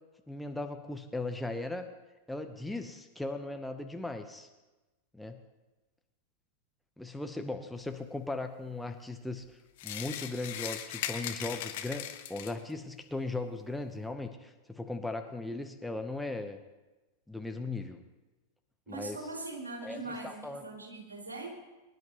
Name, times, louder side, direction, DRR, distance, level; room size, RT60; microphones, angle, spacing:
voice 1, 0.3-1.8 2.3-4.5 5.1-5.4 7.0-9.6 9.8-16.6 17.3-18.0 18.9-19.2 19.8-20.0 20.2-20.6, left 2 dB, 5° left, 5 dB, 1.0 m, -38 dB
sound 1, 9.8-12.7, left 11 dB, 50° left, 1.1 m, -38 dB
voice 2, 18.9-21.5, right 3 dB, 75° right, 0 dB, 3.0 m, -41 dB
24.0 x 11.0 x 3.1 m, 1.1 s
figure-of-eight pair, 90°, 0 cm